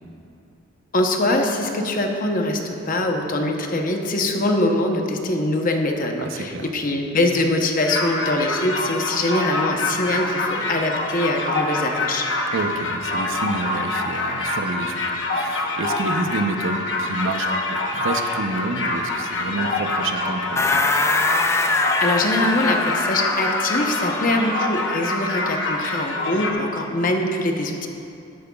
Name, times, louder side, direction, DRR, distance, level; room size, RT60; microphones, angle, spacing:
voice 1, 0.9-2.6 2.9-12.3 22.0-27.9, left 1 dB, 45° left, 3 dB, 0.8 m, -23 dB
voice 2, 6.2-6.7 12.5-15.0 15.3-20.8, right 2 dB, 80° right, 6 dB, 0.7 m, -28 dB
sound 1, 7.8-26.5, left 2 dB, 70° left, 1.0 m, -26 dB
sound 2, 20.6-25.0, left 2 dB, 15° left, 0.3 m, -23 dB
13.0 x 10.5 x 2.3 m, 2.7 s
head